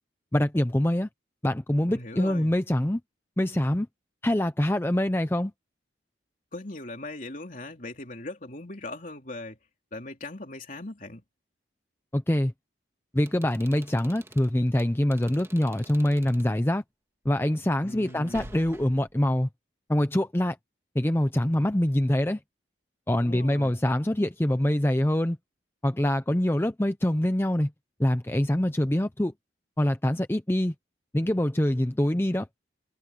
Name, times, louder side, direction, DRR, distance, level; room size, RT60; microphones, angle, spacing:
voice 1, 0.3-1.1 1.4-3.0 3.4-3.9 4.2-5.5 12.1-12.5 13.1-16.8 17.2-19.5 19.9-20.6 20.9-22.4 23.1-25.4 25.8-27.7 28.0-29.3 29.8-30.7 31.1-32.5, left 1 dB, 15° left, 0.6 m, -24 dB
voice 2, 1.9-2.5 6.5-9.6 9.9-11.2 17.8-18.5 23.2-23.8, left 2 dB, 45° left, 3.3 m, -39 dB
sound 1, 13.2-16.5 18.0-19.2, right 1 dB, 15° right, 1.8 m, -48 dB
head